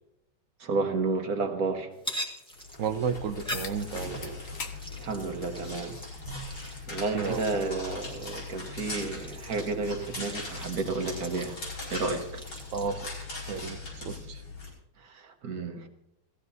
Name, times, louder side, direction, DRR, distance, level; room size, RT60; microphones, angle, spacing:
voice 1, 0.6-1.9 4.9-6.0 6.5-11.6 11.9-12.4 15.0-15.9, right 3 dB, 50° right, 5 dB, 1.5 m, -31 dB
sound 1, 1.9-12.9, equal, 5° left, 1.4 m, -44 dB
sound 2, 2.6-14.7, left 2 dB, 75° left, 5.6 m, -40 dB
voice 2, 2.8-4.4 7.1-7.4 12.7-13.1 13.5-14.4, right 6 dB, 70° right, 6 dB, 0.7 m, -32 dB
sound 3, 3.5-3.8 4.2-4.8 5.2-5.3 6.4-6.5 11.4-11.5, left 5 dB, 50° left, 1.2 m, -39 dB
17.5 x 15.0 x 2.7 m, 0.82 s
omnidirectional pair, 2.2 m